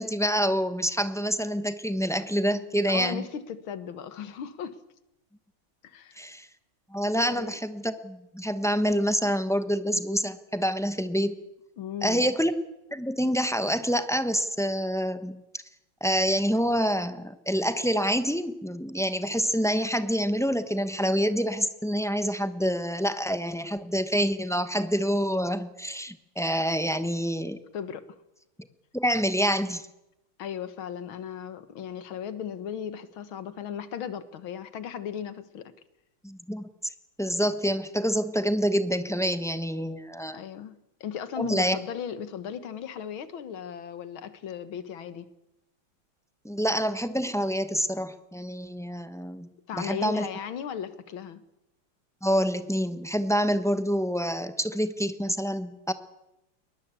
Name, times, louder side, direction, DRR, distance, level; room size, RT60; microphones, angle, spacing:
voice 1, 0.0-3.2 6.2-6.5 6.9-11.4 12.0-12.5 12.9-15.4 16.0-27.6 28.9-29.9 36.2-36.7 37.2-40.4 41.4-41.8 46.4-49.5 49.8-50.3 52.2-55.9, equal, 5° left, 0.4 m, -27 dB
voice 2, 2.9-4.8 5.8-6.2 7.2-7.6 11.8-12.3 27.7-28.2 30.4-35.7 40.3-45.3 49.7-51.4, left 8 dB, 75° left, 2.1 m, -36 dB
21.0 x 21.0 x 8.3 m
omnidirectional pair, 2.3 m